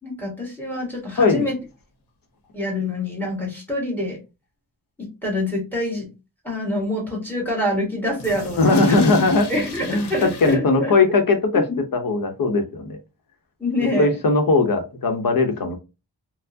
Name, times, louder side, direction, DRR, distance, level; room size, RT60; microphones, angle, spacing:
voice 1, 0.0-1.6 2.5-4.2 5.0-6.1 6.4-9.0 9.5-10.9 11.7-11.8 13.6-14.1, left 1 dB, 5° left, -2 dB, 1.6 m, -26 dB
sound 1, 1.1-1.2 1.4-1.5 1.7-1.8 2.4-2.5 8.1-10.6, left 4 dB, 90° left, 0.9 m, -36 dB
voice 2, 1.2-1.5 8.6-9.5 9.9-11.6 11.9-13.0 14.0-15.8, left 3 dB, 60° left, 5 dB, 0.8 m, -19 dB
4.2 x 2.1 x 2.7 m, 0.28 s
wide cardioid pair, 135°, 39 cm